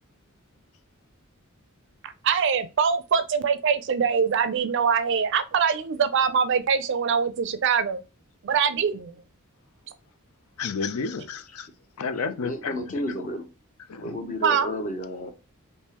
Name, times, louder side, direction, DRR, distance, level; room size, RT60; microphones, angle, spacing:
voice 1, 2.0-8.0 8.4-9.2 14.4-14.7, right 6 dB, 55° right, 0.4 m, -23 dB
voice 2, 10.6-11.7 12.0-12.8 13.9-14.1, left 5 dB, 90° left, 0.5 m, -31 dB
voice 3, 12.3-13.5 14.0-15.3, equal, 35° left, 0.7 m, -32 dB
3.6 x 2.7 x 2.9 m
head